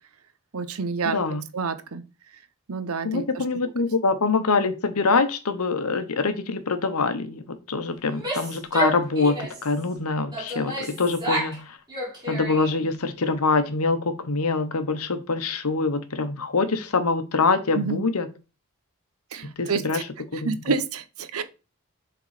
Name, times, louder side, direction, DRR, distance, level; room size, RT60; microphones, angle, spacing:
voice 1, 0.5-1.2 1.5-2.0 2.7-3.4 17.7-18.0 19.3-20.0 20.3-21.4, right 5 dB, 80° right, 0.8 m, -28 dB
voice 2, 1.0-1.4 3.0-11.6 12.3-18.3 19.4-20.0 20.3-20.6, left 4 dB, 90° left, 1.0 m, -24 dB
Female speech woman speaking / Yell, 8.1-9.7 10.3-11.6 11.9-12.9, right 1 dB, 20° right, 2.8 m, -30 dB
6.9 x 3.8 x 4.9 m
head